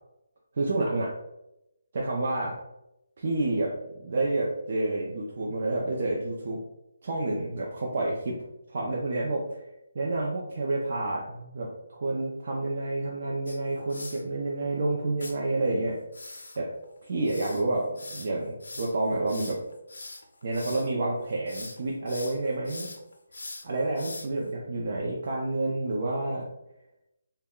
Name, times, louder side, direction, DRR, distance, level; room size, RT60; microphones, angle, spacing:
voice 1, 0.6-1.1 1.9-2.6 3.2-6.6 7.0-8.4 8.7-9.6 9.9-16.0 16.6-16.7 17.0-19.6 20.4-22.9 23.6-26.5, right 2 dB, 40° right, -3 dB, 0.4 m, -29 dB
sound 1, 13.5-14.2 15.2-15.3 16.1-20.9 21.3-21.8 22.1-24.5, left 2 dB, 85° left, 0.5 m, -42 dB
2.2 x 2.1 x 3.5 m, 0.88 s
hypercardioid pair, 175°, 0 cm